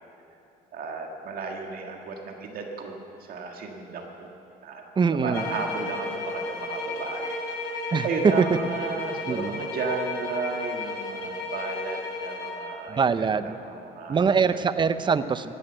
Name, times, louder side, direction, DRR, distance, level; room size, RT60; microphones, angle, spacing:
voice 1, 0.7-4.3 4.6-4.8 5.1-7.4 7.7-14.6, right 4 dB, 60° right, 2 dB, 1.7 m, -34 dB
voice 2, 5.0-5.4 7.9-8.4 9.3-9.6 12.9-13.6 14.1-15.5, right 5 dB, 25° right, 13 dB, 0.6 m, -23 dB
sound 1, 5.3-12.7, left 3 dB, 75° left, 3.0 m, -34 dB
15.5 x 11.0 x 7.9 m, 2.7 s
cardioid pair, 110°, 17 cm